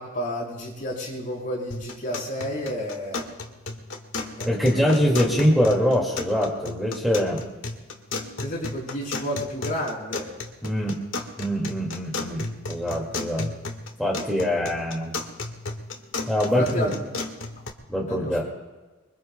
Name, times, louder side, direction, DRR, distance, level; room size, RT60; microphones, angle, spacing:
voice 1, 0.0-3.3 4.4-5.4 8.4-10.3 16.6-17.0 18.1-18.4, equal, 45° left, -4 dB, 6.2 m, -31 dB
sound 1, 1.7-17.7, left 3 dB, 80° left, 1.7 m, -35 dB
voice 2, 4.4-7.4 10.6-11.0 11.4-13.5 14.0-15.2 16.3-16.9 17.9-18.4, equal, ahead, -4 dB, 2.2 m, -23 dB
26.5 x 23.5 x 2.3 m, 1.2 s
head